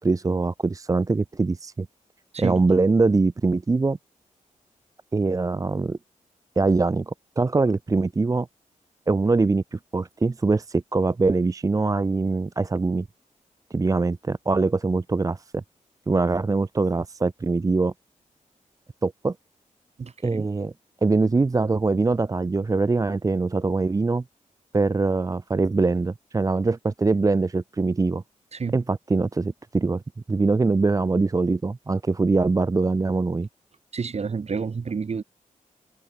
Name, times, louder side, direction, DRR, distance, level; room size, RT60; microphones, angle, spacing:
voice 1, 0.0-1.9 2.4-4.0 5.1-6.0 6.6-8.5 9.1-13.1 13.7-15.6 16.1-17.9 19.0-19.4 20.2-20.7 21.0-24.2 24.7-28.2 28.7-30.0 30.3-33.5, right 3 dB, 25° right, 0.6 m, -23 dB
voice 2, 20.0-20.5 28.5-28.7 33.9-35.2, right 5 dB, 50° right, 4.1 m, -29 dB
cardioid pair, 85°, 14 cm